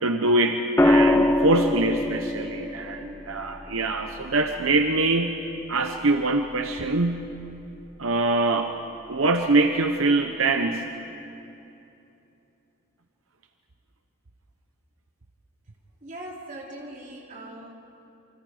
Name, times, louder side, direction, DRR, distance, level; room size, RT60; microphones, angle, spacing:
voice 1, 0.0-5.4 5.7-7.3 8.0-8.7 9.1-10.9, right 2 dB, 80° right, 5 dB, 1.0 m, -23 dB
sound 1, 0.8-4.9 6.6-7.0, left 1 dB, 10° left, 0.6 m, -24 dB
voice 2, 16.0-17.7, right 1 dB, 35° right, -2 dB, 3.4 m, -40 dB
28.5 x 24.5 x 5.1 m, 2.9 s
head